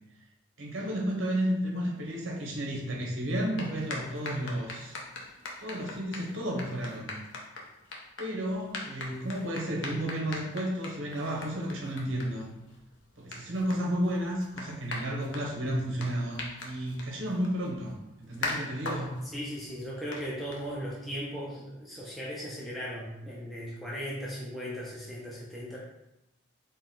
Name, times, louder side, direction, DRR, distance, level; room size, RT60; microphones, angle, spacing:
voice 1, 0.6-5.0 5.6-7.2 8.2-12.5 13.2-19.1, equal, 70° right, -1 dB, 0.8 m, -32 dB
sound 1, 3.3-21.1, left 2 dB, 65° left, 0.6 m, -42 dB
voice 2, 19.2-25.8, equal, ahead, -6 dB, 0.4 m, -37 dB
3.9 x 2.2 x 3.7 m, 0.92 s
head